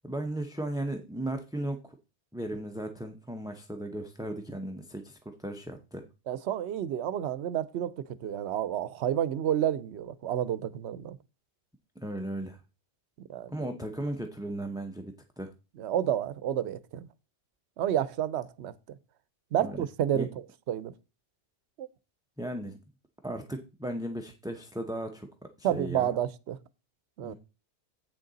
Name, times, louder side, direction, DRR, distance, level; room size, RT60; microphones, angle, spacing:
voice 1, 0.0-1.9 2.3-6.0 12.0-12.6 13.5-15.5 19.6-19.8 20.1-20.3 22.4-22.7 23.2-25.3 25.6-26.1 27.2-27.3, right 1 dB, 5° right, 0.6 m, -36 dB
voice 2, 6.3-11.2 13.3-13.7 15.8-17.1 17.8-18.7 19.5-20.3 20.7-20.9 21.8-21.9 25.6-26.6 27.2-27.3, right 10 dB, 75° right, 0.9 m, -30 dB
8.3 x 6.4 x 4.0 m
omnidirectional pair, 1.2 m